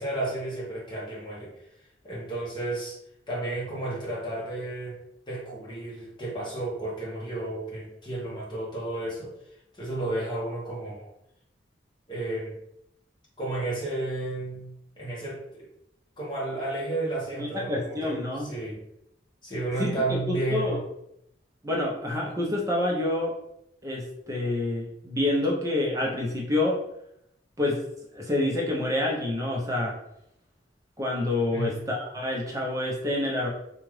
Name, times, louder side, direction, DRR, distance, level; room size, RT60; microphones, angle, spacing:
voice 1, 0.0-1.5 2.0-3.0 3.3-5.0 5.3-9.3 9.7-11.1 12.1-12.5 13.4-14.7 15.0-15.7 16.2-18.8 19.4-20.9 31.5-31.8, right 2 dB, 25° left, -5 dB, 1.1 m, -32 dB
voice 2, 17.4-18.5 19.8-19.9 20.3-20.8 21.6-23.3 23.8-26.8 27.6-27.8 28.1-29.9 31.0-33.5, left 2 dB, 20° right, -3 dB, 0.6 m, -27 dB
2.8 x 2.4 x 3.1 m, 0.78 s
head